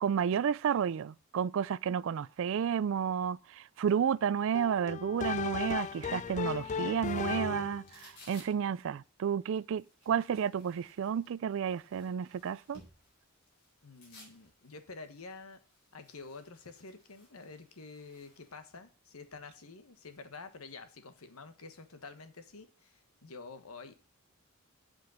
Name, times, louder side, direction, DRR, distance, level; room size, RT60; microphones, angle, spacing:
voice 1, 0.0-12.8, right 7 dB, 65° right, 0.3 m, -31 dB
sound 1, 4.5-7.9, left 6 dB, 35° left, 0.4 m, -36 dB
sound 2, 5.1-18.6, left 1 dB, 55° left, 4.3 m, -61 dB
voice 2, 13.8-15.6 15.9-23.9, left 4 dB, 85° left, 1.3 m, -49 dB
8.1 x 5.3 x 7.5 m
head